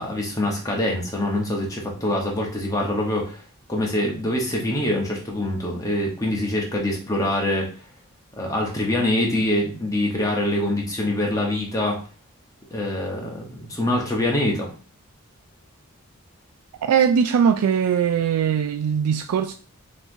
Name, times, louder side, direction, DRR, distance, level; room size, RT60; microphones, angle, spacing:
voice 1, 0.0-3.4 3.7-7.7 8.4-12.0 12.7-14.7, left 1 dB, 15° left, 1.0 m, -24 dB
voice 2, 16.8-19.5, right 7 dB, 85° right, 0.3 m, -20 dB
5.6 x 3.0 x 2.7 m
head